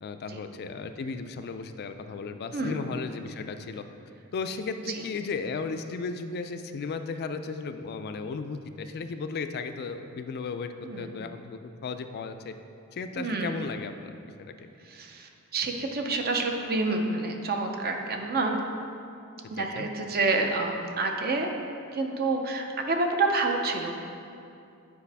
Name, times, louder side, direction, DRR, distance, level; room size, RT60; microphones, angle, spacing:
voice 1, 0.0-3.8 4.3-12.5 12.9-14.1 14.4-14.7 19.6-19.9, left 4 dB, 45° left, 9 dB, 0.3 m, -35 dB
voice 2, 2.5-2.8 10.8-11.1 13.2-13.6 14.8-18.6 19.5-21.5 21.9-24.0, right 3 dB, 45° right, 3 dB, 0.5 m, -28 dB
8.3 x 4.9 x 3.4 m, 2.6 s
head